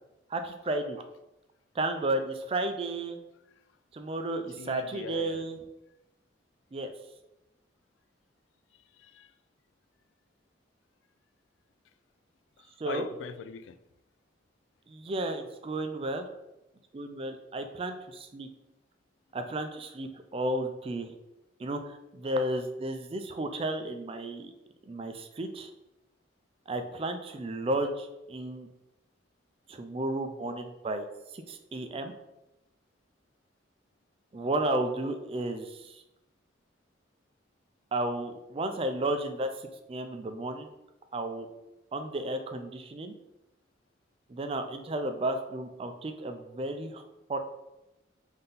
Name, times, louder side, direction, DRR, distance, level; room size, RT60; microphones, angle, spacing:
voice 1, 0.3-1.0 1.8-3.2 3.9-5.6 6.7-6.9 12.8-13.1 14.9-16.3 16.9-18.5 19.3-21.1 21.6-24.5 24.9-25.7 26.7-28.7 29.7-31.0 31.3-32.1 34.3-36.0 37.9-39.5 39.9-40.7 41.1-41.5 41.9-43.1 44.3-47.0 47.3-47.4, right 1 dB, 30° right, 6 dB, 0.3 m, -33 dB
voice 2, 4.6-5.5 9.0-9.3 12.6-13.8, left 6 dB, 75° left, 10 dB, 0.3 m, -41 dB
3.8 x 2.7 x 3.8 m, 0.92 s
head